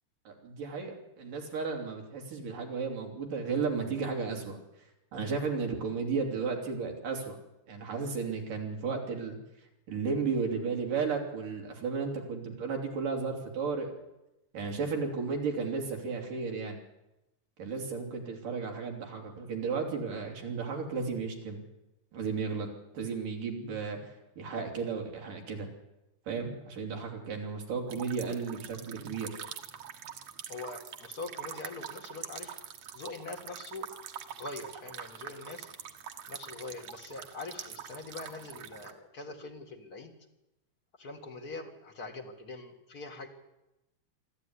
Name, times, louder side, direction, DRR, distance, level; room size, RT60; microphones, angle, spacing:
voice 1, 0.3-4.6 5.1-7.4 7.7-9.4 9.9-13.9 14.5-16.8 17.6-21.6 22.1-22.7 22.9-25.7 26.3-29.4, right 5 dB, 55° right, 2 dB, 4.6 m, -34 dB
sound 1, 27.9-38.9, right 9 dB, 75° right, 1.5 m, -44 dB
voice 2, 30.5-32.5 32.9-33.9 34.4-35.7 36.3-40.2 41.0-43.3, left 3 dB, 45° left, 2 dB, 1.1 m, -43 dB
25.0 x 14.0 x 9.8 m, 0.95 s
omnidirectional pair, 4.9 m